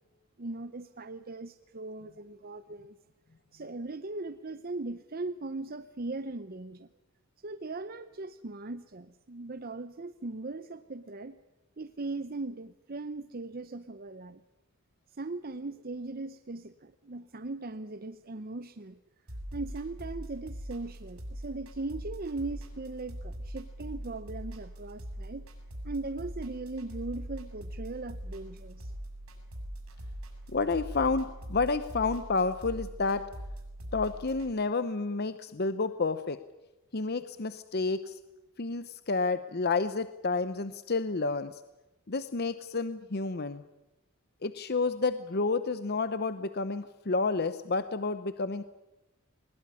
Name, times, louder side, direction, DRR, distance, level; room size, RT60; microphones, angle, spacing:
voice 1, 0.4-2.9 3.5-6.9 7.4-11.4 11.8-14.4 15.2-19.0 19.5-25.4 25.8-28.9, right 2 dB, 45° right, 10 dB, 0.8 m, -39 dB
sound 1, 19.3-34.5, equal, 85° right, 6.1 m, -42 dB
voice 2, 30.5-33.2 33.9-36.4 36.9-38.2 38.6-41.6 42.1-43.6 44.4-48.6, left 3 dB, 50° left, 12 dB, 0.8 m, -30 dB
20.5 x 20.0 x 9.9 m, 1.0 s
head